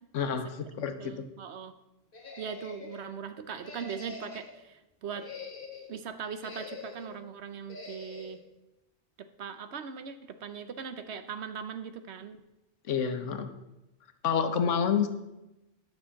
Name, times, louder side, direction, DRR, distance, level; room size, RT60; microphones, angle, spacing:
voice 1, 0.1-1.1 12.9-13.5 14.2-15.1, left 7 dB, 80° left, 9 dB, 1.2 m, -28 dB
voice 2, 0.8-1.7 2.4-5.3 5.9-8.4 9.4-12.4, right 6 dB, 65° right, 10 dB, 1.0 m, -40 dB
sound 1, 2.1-3.1 3.6-4.6 5.0-5.9 6.4-7.2 7.7-8.4, left 4 dB, 45° left, 1.5 m, -45 dB
9.9 x 6.5 x 5.7 m, 0.96 s
omnidirectional pair, 1.2 m